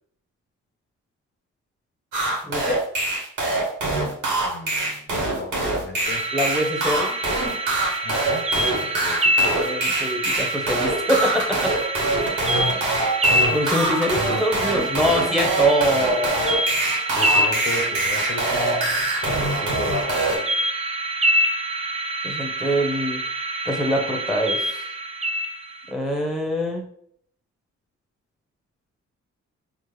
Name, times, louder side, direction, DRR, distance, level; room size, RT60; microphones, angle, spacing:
sound 1, 2.1-20.4, right 2 dB, 80° right, 1.0 m, -24 dB
voice 1, 2.4-2.8 6.3-7.1 9.5-11.7 13.5-16.4 22.2-23.2 23.7-24.9 25.9-26.8, equal, ahead, 2 dB, 0.9 m, -24 dB
voice 2, 4.4-6.3 8.0-9.6 17.1-20.5, left 3 dB, 35° left, 2 dB, 0.6 m, -34 dB
sound 2, 6.0-25.9, right 1 dB, 20° right, 0.5 m, -26 dB
3.5 x 2.0 x 3.1 m, 0.63 s
supercardioid pair, 55°, 30 cm